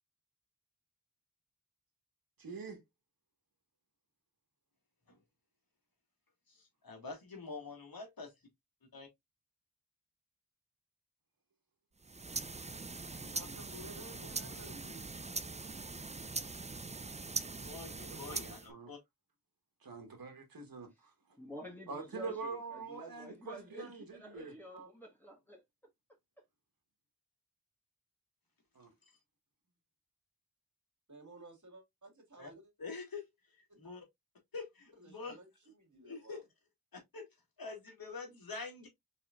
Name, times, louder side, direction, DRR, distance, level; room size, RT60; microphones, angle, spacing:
voice 1, 2.4-2.8 13.2-13.6 17.9-18.9 19.8-21.1 21.9-24.9 28.7-28.9, right 4 dB, 75° right, 1.3 m, -45 dB
voice 2, 6.5-8.3 8.9-9.1 17.6-19.0 29.0-29.1 32.4-32.5 32.8-33.2 33.6-34.1 34.5-35.4 36.0-36.4 36.9-37.3 37.6-38.9, left 4 dB, 80° left, 2.1 m, -46 dB
sound 1, 12.0-18.7, right 3 dB, 20° right, 0.5 m, -42 dB
voice 3, 13.2-15.1 31.1-32.6 33.7-33.8 35.0-35.5 35.8-36.4, right 1 dB, 55° right, 2.0 m, -53 dB
voice 4, 21.4-25.6, equal, 5° left, 1.6 m, -50 dB
4.6 x 4.2 x 2.4 m
cardioid pair, 40°, 35 cm